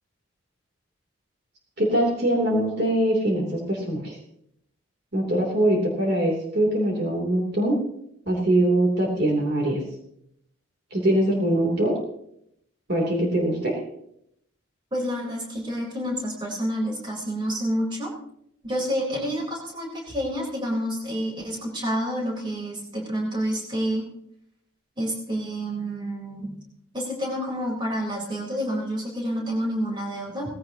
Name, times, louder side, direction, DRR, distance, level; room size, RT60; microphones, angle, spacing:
voice 1, 1.8-4.2 5.1-7.8 8.3-9.8 10.9-11.9 12.9-13.8, right 1 dB, 55° right, -1 dB, 3.1 m, -22 dB
voice 2, 14.9-18.1 18.6-24.1 25.0-26.6 26.9-30.5, equal, 25° right, -2 dB, 3.9 m, -29 dB
18.5 x 16.0 x 2.9 m, 0.74 s
head